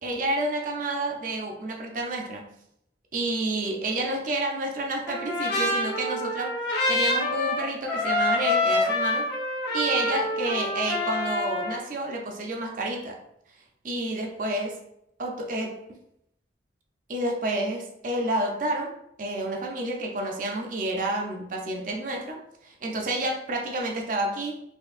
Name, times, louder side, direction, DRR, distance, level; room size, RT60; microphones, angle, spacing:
voice 1, 0.0-2.5 3.1-6.6 6.9-9.3 9.7-13.2 13.8-14.8 15.2-15.8 17.1-24.6, right 1 dB, 50° right, 1 dB, 0.6 m, -29 dB
Trumpet, 5.1-11.8, left 2 dB, 70° left, 1.1 m, -26 dB
4.3 x 2.8 x 2.4 m, 0.76 s
head